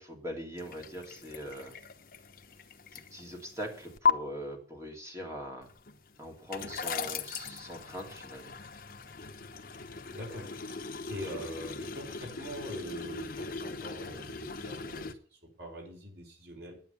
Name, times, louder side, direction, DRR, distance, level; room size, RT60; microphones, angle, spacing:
voice 1, 0.0-1.7 2.9-5.7 6.2-8.5, equal, 15° right, 0 dB, 3.0 m, -41 dB
sound 1, 0.6-4.1 5.6-15.1, left 5 dB, 55° left, 1.0 m, -37 dB
voice 2, 10.1-10.5 11.1-15.1 15.6-16.8, equal, 70° right, -1 dB, 4.9 m, -43 dB
9.6 x 9.3 x 6.9 m, 0.44 s
head